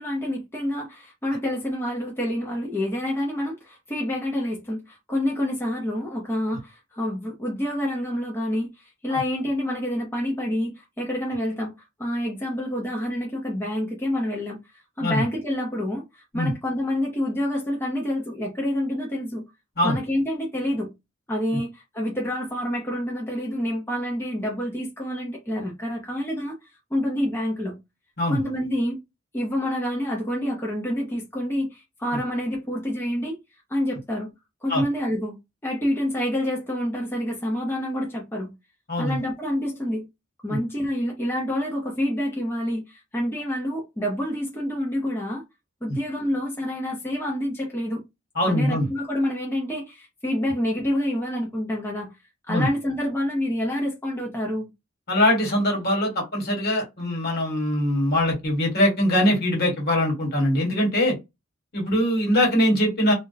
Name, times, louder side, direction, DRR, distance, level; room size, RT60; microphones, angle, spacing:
voice 1, 0.0-11.7 12.0-14.6 15.0-19.4 19.8-20.9 21.3-26.6 26.9-27.8 28.3-29.0 29.3-33.4 33.7-34.3 34.6-35.4 35.6-38.5 39.0-40.1 40.4-45.4 45.8-48.0 48.5-52.1 52.5-54.7, left 1 dB, 10° left, 0.6 m, -27 dB
voice 2, 48.3-48.9 52.5-52.7 55.1-61.1 61.7-63.1, left 1 dB, 50° left, 1.4 m, -22 dB
2.4 x 2.1 x 3.9 m
head